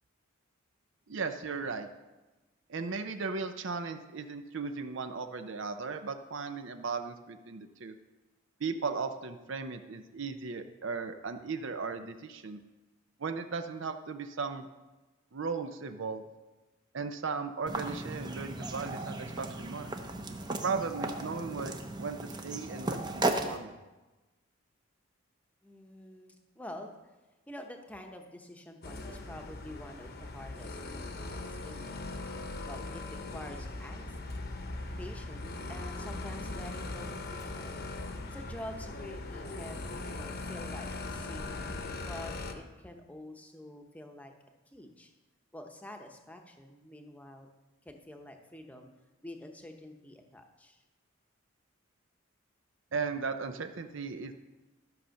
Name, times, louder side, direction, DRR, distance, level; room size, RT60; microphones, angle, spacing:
voice 1, 1.1-1.9 2.7-8.0 8.6-12.6 13.2-14.7 15.3-16.2 16.9-19.9 20.5-23.7 52.9-54.3, right 4 dB, 60° right, 8 dB, 0.6 m, -36 dB
sound 1, 17.7-23.6, right 2 dB, 20° right, 0.7 m, -36 dB
voice 2, 25.6-27.0 27.5-33.0 33.3-34.4 35.0-37.8 38.3-44.3 44.7-45.1 45.5-47.5 47.8-48.9 49.2-50.8, left 1 dB, 5° left, 4 dB, 0.9 m, -47 dB
sound 2, 28.8-42.5, left 2 dB, 50° left, 0.9 m, -40 dB
13.0 x 5.6 x 6.5 m, 1.1 s
head